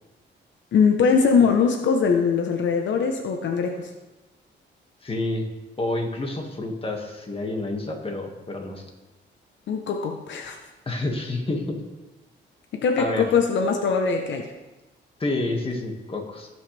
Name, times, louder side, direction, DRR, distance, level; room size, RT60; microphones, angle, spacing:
voice 1, 0.7-3.9 9.7-10.6 12.7-14.5, left 5 dB, 75° left, 4 dB, 1.0 m, -21 dB
voice 2, 5.0-5.4 5.8-8.8 10.9-11.8 13.0-13.3 15.2-16.5, left 2 dB, 30° left, 2 dB, 1.9 m, -28 dB
18.0 x 6.4 x 3.4 m, 1.1 s
cardioid pair, 95°, 19 cm